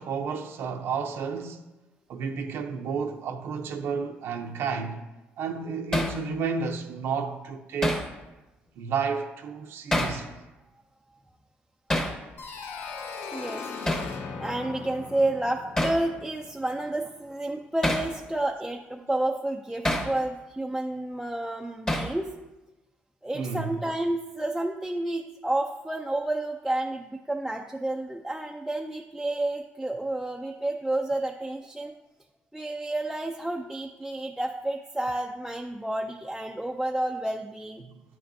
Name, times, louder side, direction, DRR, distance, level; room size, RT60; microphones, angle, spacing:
voice 1, 0.0-1.6 2.1-5.0 5.4-8.0 8.8-10.3 19.0-19.1 23.3-23.8 37.8-38.0, right 5 dB, 75° right, 0.7 m, -31 dB
Hammer, 5.9-6.2 7.8-8.1 9.9-10.2 11.9-12.2 13.9-14.1 15.8-16.0 17.8-18.1 19.8-20.1 21.9-22.2, left 1 dB, 15° left, 1.0 m, -26 dB
sound 1, 12.4-17.0, left 5 dB, 60° left, 1.1 m, -39 dB
voice 2, 13.3-13.7 14.4-22.3 23.2-32.0 32.5-37.8, right 1 dB, 5° right, 0.4 m, -30 dB
9.4 x 7.7 x 2.7 m
cardioid pair, 115°, 4 cm